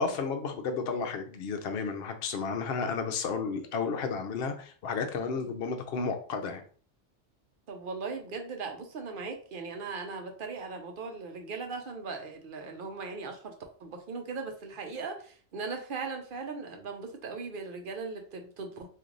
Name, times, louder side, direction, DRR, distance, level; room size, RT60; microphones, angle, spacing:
voice 1, 0.0-6.6, left 5 dB, 60° left, 5 dB, 0.8 m, -32 dB
voice 2, 7.7-13.5 13.8-18.9, right 4 dB, 55° right, 4 dB, 0.8 m, -39 dB
3.1 x 2.6 x 3.8 m, 0.43 s
omnidirectional pair, 1.2 m